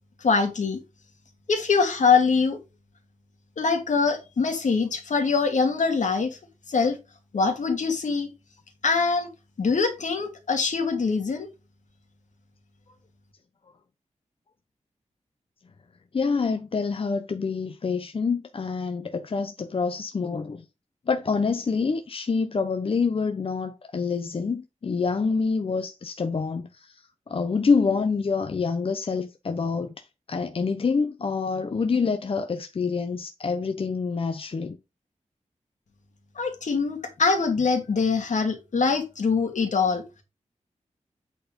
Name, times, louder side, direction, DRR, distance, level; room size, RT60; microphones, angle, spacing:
voice 1, 0.2-0.8 1.5-2.6 3.6-6.4 6.7-7.0 7.3-8.3 8.8-9.3 9.6-11.5 36.4-40.2, left 4 dB, 75° left, 2.4 m, -23 dB
voice 2, 16.1-20.6 21.1-34.8, left 5 dB, 45° left, 0.8 m, -27 dB
8.5 x 4.4 x 5.1 m
wide cardioid pair, 125°, 13 cm